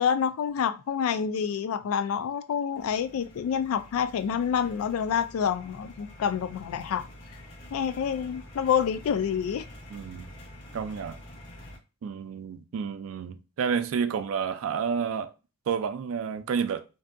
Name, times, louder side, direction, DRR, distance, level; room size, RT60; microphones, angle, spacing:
voice 1, 0.0-7.1 7.7-9.7, left 7 dB, 85° left, 0.3 m, -27 dB
sound 1, 2.8-11.8, equal, 60° left, 1.0 m, -47 dB
voice 2, 9.9-10.3 10.7-11.2 12.0-15.3 15.7-16.9, right 6 dB, 75° right, 0.3 m, -30 dB
2.6 x 2.3 x 2.4 m
head